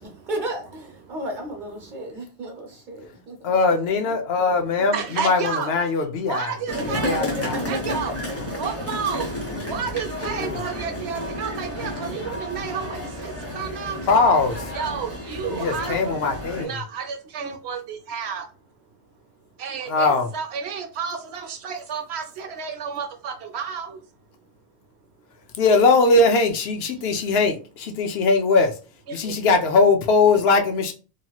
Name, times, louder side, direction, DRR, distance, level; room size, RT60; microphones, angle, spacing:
voice 1, 0.0-3.8 6.7-8.3 9.6-9.7 10.2-10.3 25.9-26.1, right 1 dB, 50° right, 1.0 m, -34 dB
voice 2, 3.4-4.9 5.2-6.5 7.0-7.5 10.4-10.6 14.1-14.6 15.5-16.7 19.9-20.3 25.6-28.7 29.1-30.9, left 3 dB, 70° left, 0.8 m, -20 dB
voice 3, 4.9-5.7 6.3-7.2 7.7-8.1 8.5-9.3 9.7-14.0 14.7-16.1 16.6-18.5 19.6-24.0 29.1-29.2, right 6 dB, 75° right, 0.9 m, -31 dB
sound 1, 6.7-16.6, left 1 dB, 15° left, 0.8 m, -32 dB
2.9 x 2.8 x 2.3 m
omnidirectional pair, 1.1 m